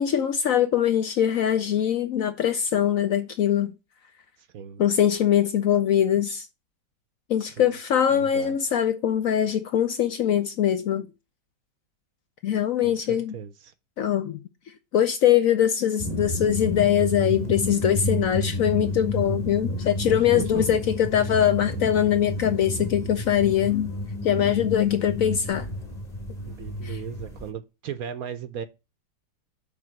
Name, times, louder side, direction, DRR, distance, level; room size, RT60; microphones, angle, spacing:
voice 1, 0.0-3.7 4.8-6.5 7.3-11.1 12.4-13.3 14.0-14.4 14.9-23.9 24.2-25.7 26.8-27.0, left 10 dB, 65° left, 0.9 m, -22 dB
voice 2, 8.1-8.5 12.8-13.7 20.1-20.8 26.5-28.7, right 8 dB, 65° right, 1.0 m, -37 dB
sound 1, 16.0-27.5, left 1 dB, 25° left, 1.7 m, -31 dB
8.5 x 3.4 x 6.4 m
omnidirectional pair, 1.9 m